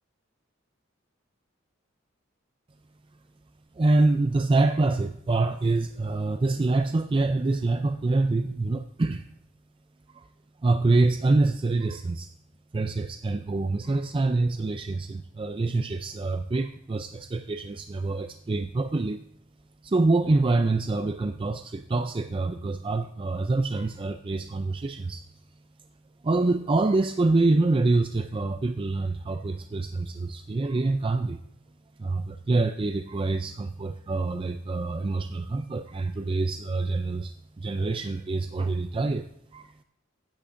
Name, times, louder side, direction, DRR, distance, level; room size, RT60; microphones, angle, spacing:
voice 1, 3.8-9.2 10.1-10.2 10.6-12.3 12.7-19.2 19.8-25.2 26.2-31.4 32.0-39.7, right 3 dB, 25° right, 9 dB, 0.4 m, -26 dB
15.5 x 10.5 x 2.6 m, 0.76 s
head